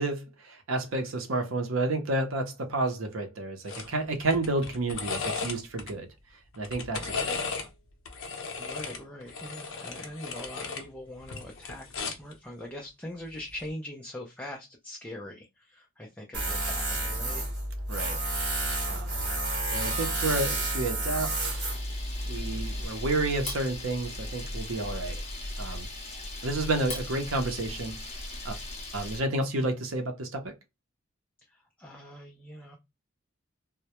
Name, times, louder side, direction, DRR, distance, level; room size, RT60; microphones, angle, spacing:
voice 1, 0.0-6.1 6.6-7.3 17.9-18.2 18.6-19.2 19.7-21.6 22.3-25.2 25.6-25.9 26.4-28.0 28.4-28.6 28.9-30.5, right 2 dB, 75° right, 0.6 m, -30 dB
sound 1, 3.7-3.9 4.2-5.9 6.5-7.7 8.1-10.9 11.2-12.3 13.5-13.7, left 4 dB, 70° left, 0.6 m, -35 dB
voice 2, 7.1-7.4 8.6-17.4 31.5-32.8, left 1 dB, 5° left, 0.4 m, -42 dB
Tools, 16.3-22.9, right 2 dB, 60° right, 1.1 m, -30 dB
Camera, 21.4-29.2, left 1 dB, 30° left, 0.7 m, -38 dB
2.2 x 2.1 x 2.8 m
head